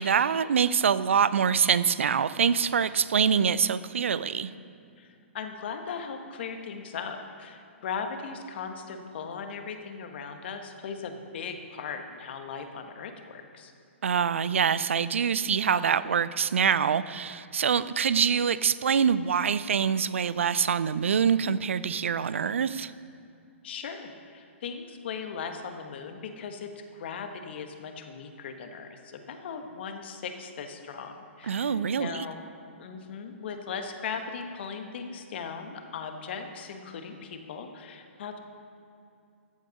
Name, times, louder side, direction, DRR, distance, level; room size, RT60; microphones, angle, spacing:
voice 1, 0.0-4.5 14.0-22.9 31.5-32.2, right 7 dB, 70° right, 17 dB, 0.4 m, -25 dB
voice 2, 5.0-13.7 23.6-32.4 32.8-38.4, left 6 dB, 55° left, 6 dB, 1.3 m, -38 dB
14.0 x 7.9 x 5.3 m, 2.5 s
figure-of-eight pair, 125°, 7 cm